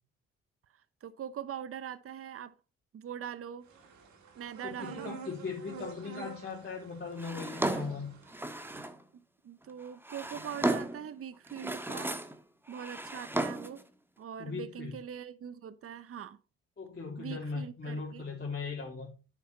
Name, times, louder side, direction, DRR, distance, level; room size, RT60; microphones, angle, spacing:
voice 1, 1.0-2.6 2.9-3.7 4.4-5.2 9.1-12.2 12.7-13.8 14.2-16.4 17.2-18.2, right 9 dB, 50° right, 0.9 m, -42 dB
sound 1, 3.6-8.9, right 5 dB, 70° right, 2.3 m, -48 dB
voice 2, 4.6-8.1 14.4-15.0 16.8-19.1, left 4 dB, 35° left, 3.1 m, -39 dB
Drawer open or close, 7.2-9.0 9.8-11.1 11.5-12.4 12.7-13.8, right 1 dB, 5° right, 1.5 m, -34 dB
9.8 x 6.2 x 4.2 m
hypercardioid pair, 45°, 29 cm